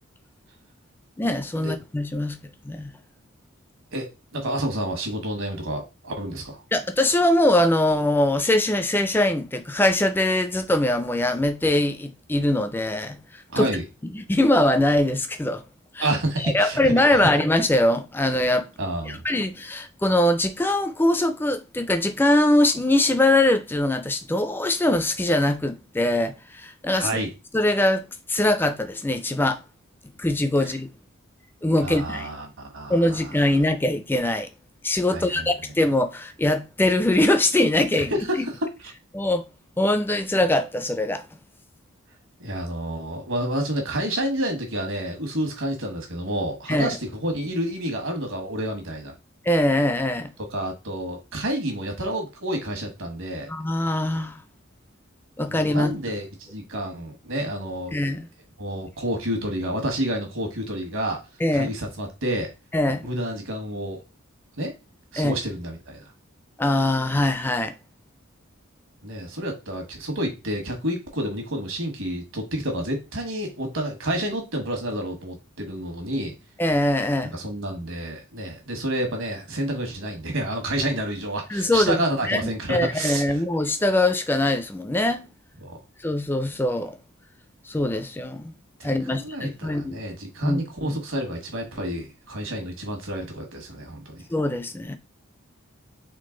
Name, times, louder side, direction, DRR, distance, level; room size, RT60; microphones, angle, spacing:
voice 1, 1.2-2.4 2.6-2.9 6.7-13.7 14.1-15.6 15.9-16.1 16.4-18.7 19.1-27.2 27.5-29.6 30.2-30.9 31.6-32.3 32.9-34.5 34.8-38.1 38.4-38.5 39.1-39.4 39.8-41.3 46.7-46.9 49.4-50.3 53.5-54.4 55.4-55.9 57.9-58.3 61.4-61.7 62.7-63.0 65.2-65.4 66.6-67.7 76.6-77.3 81.5-82.0 82.3-82.4 82.7-85.3 86.0-87.0 87.7-88.5 88.8-90.0 90.4-91.0 94.3-95.0, left 1 dB, 10° left, 0.4 m, -22 dB
voice 2, 3.9-6.6 13.5-13.8 16.0-17.2 18.8-19.2 26.9-27.3 30.6-30.7 31.8-33.4 35.1-35.5 38.1-38.5 42.4-49.1 50.5-53.5 55.5-58.0 58.6-61.2 61.5-62.5 63.0-64.0 64.6-64.7 65.1-66.0 69.0-76.3 77.3-83.4 85.6-85.8 88.8-94.2, right 1 dB, 70° right, 1.4 m, -29 dB
3.7 x 3.3 x 3.8 m
head